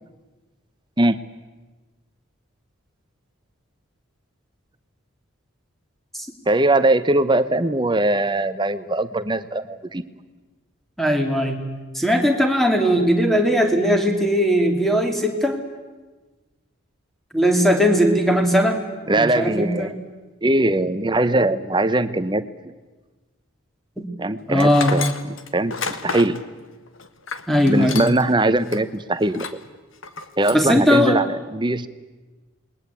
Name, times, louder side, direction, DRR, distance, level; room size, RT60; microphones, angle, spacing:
voice 1, 6.5-10.0 19.1-20.0 20.4-22.7 24.2-26.4 27.7-29.6 30.4-31.9, right 2 dB, 20° right, 13 dB, 0.9 m, -21 dB
voice 2, 11.0-11.6 11.9-15.6 17.3-19.9 24.0-24.1 24.5-24.9 27.5-28.0 30.5-31.2, equal, ahead, 4 dB, 2.8 m, -19 dB
Tools, 24.6-28.3 28.7-28.8 29.3-29.7 30.0-30.7, left 5 dB, 70° left, 1.6 m, -31 dB
28.0 x 21.5 x 8.4 m, 1.2 s
head